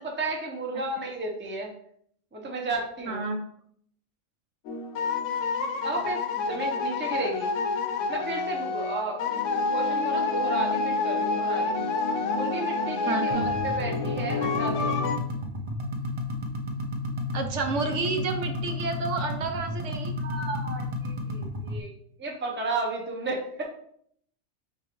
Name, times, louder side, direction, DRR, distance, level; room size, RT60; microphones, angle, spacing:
voice 1, 0.0-1.7 2.3-3.3 5.8-7.5 8.1-11.8 12.3-15.0 20.2-21.9 22.2-23.6, right 2 dB, 10° right, 0 dB, 0.6 m, -33 dB
voice 2, 3.1-3.4 13.1-13.5 17.3-20.1, right 3 dB, 70° right, 5 dB, 0.9 m, -30 dB
sound 1, 4.7-15.2, left 4 dB, 70° left, 0.9 m, -28 dB
sound 2, 13.3-21.8, left 2 dB, 50° right, 0.3 m, -32 dB
4.7 x 3.8 x 3.0 m, 0.66 s
omnidirectional pair, 1.4 m